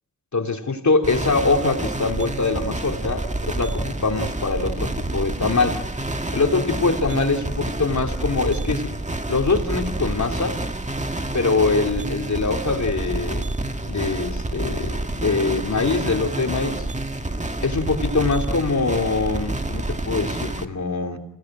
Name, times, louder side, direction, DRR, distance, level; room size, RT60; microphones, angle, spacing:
voice 1, 0.3-5.8 6.3-8.9 9.3-10.6 11.3-13.5 13.9-16.9 17.6-21.2, left 3 dB, 50° left, 3.2 m, -23 dB
sound 1, 1.0-20.6, right 2 dB, 20° right, 1.9 m, -28 dB
26.5 x 17.5 x 9.0 m
cardioid pair, 60°, 36 cm